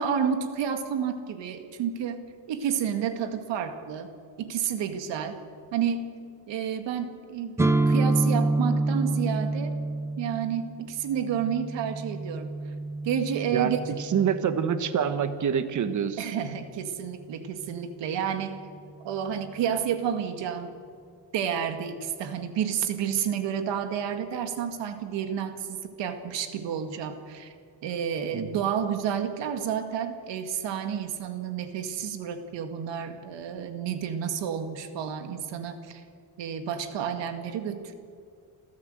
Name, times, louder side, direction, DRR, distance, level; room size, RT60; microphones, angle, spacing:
voice 1, 0.0-2.2 2.5-4.1 4.4-5.4 5.7-6.0 6.5-9.7 10.2-12.5 13.0-13.8 16.2-18.5 19.0-20.8 21.3-27.5 27.8-36.0 36.4-37.9, right 8 dB, 85° right, 7 dB, 2.1 m, -30 dB
sound 1, 7.6-15.4, right 2 dB, 5° right, 0.5 m, -28 dB
voice 2, 13.5-16.2 28.3-28.5, right 7 dB, 45° right, 10 dB, 1.3 m, -26 dB
29.0 x 14.0 x 7.8 m, 2.3 s
cardioid pair, 140°, 42 cm